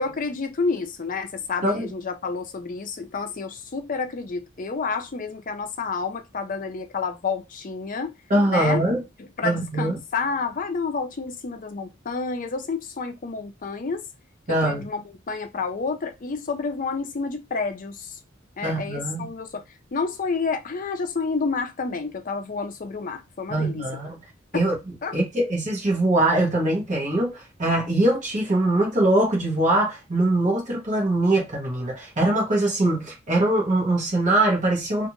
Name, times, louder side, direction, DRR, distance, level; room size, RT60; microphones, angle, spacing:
voice 1, 0.0-8.1 8.5-8.8 9.4-14.0 14.5-18.2 18.6-19.6 19.9-23.8 24.5-24.7 25.0-25.2, left 4 dB, 45° left, 0.5 m, -29 dB
voice 2, 8.3-9.0 9.4-10.0 14.5-14.8 18.6-19.3 23.5-24.2 24.5-35.1, right 1 dB, 40° right, 1.1 m, -22 dB
2.5 x 2.5 x 2.9 m
head